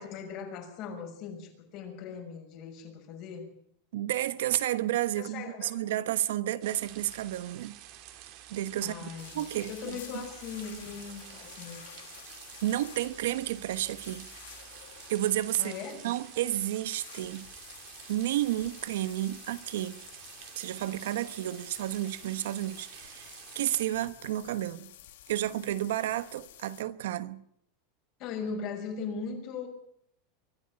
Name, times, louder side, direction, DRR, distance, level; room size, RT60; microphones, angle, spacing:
voice 1, 0.0-3.5 5.1-5.7 8.8-9.4 9.7-11.9 15.6-16.0 28.2-29.7, left 5 dB, 40° left, 6.2 m, -39 dB
voice 2, 3.9-7.8 8.5-8.9 9.3-10.2 12.6-14.3 15.1-15.7 16.0-17.5 18.1-20.0 20.6-24.9 25.3-27.4, right 13 dB, 85° right, 1.1 m, -31 dB
sound 1, 6.6-23.9, right 12 dB, 45° right, 2.6 m, -49 dB
sound 2, 9.2-26.8, left 13 dB, 80° left, 1.8 m, -51 dB
24.0 x 12.5 x 8.8 m
supercardioid pair, 165°, 0 cm